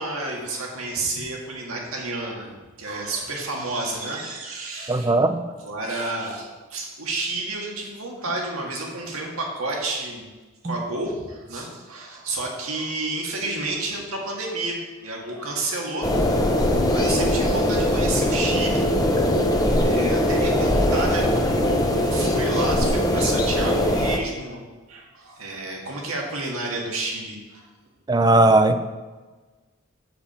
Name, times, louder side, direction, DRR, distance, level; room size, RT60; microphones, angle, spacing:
voice 1, 0.0-2.5 2.8-5.1 5.6-10.3 10.6-16.1 16.5-18.8 19.8-24.6 24.9-27.7, right 2 dB, 90° right, -1 dB, 1.7 m, -30 dB
voice 2, 4.9-5.5 10.6-10.8 28.1-28.8, right 2 dB, 20° right, 9 dB, 0.4 m, -18 dB
sound 1, 16.0-24.2, left 1 dB, 20° left, 0.7 m, -21 dB
7.1 x 6.6 x 4.3 m, 1.3 s
head